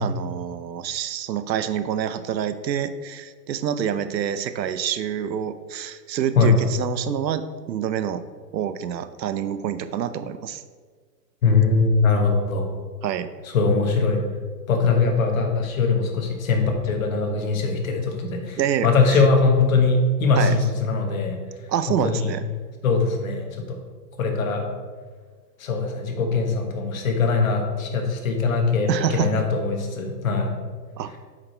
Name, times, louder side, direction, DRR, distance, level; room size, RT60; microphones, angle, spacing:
voice 1, 0.0-8.2 8.5-10.6 13.0-13.3 18.6-19.3 20.4-20.5 21.7-22.4 28.9-29.3 31.0-31.1, right 9 dB, 85° right, 12 dB, 0.8 m, -27 dB
voice 2, 11.4-12.7 13.4-14.2 14.7-21.4 21.9-22.3 22.8-23.8 24.2-24.6 25.6-30.6, left 4 dB, 55° left, 2 dB, 1.4 m, -21 dB
7.3 x 5.0 x 4.4 m, 1.5 s
hypercardioid pair, 175°, 49 cm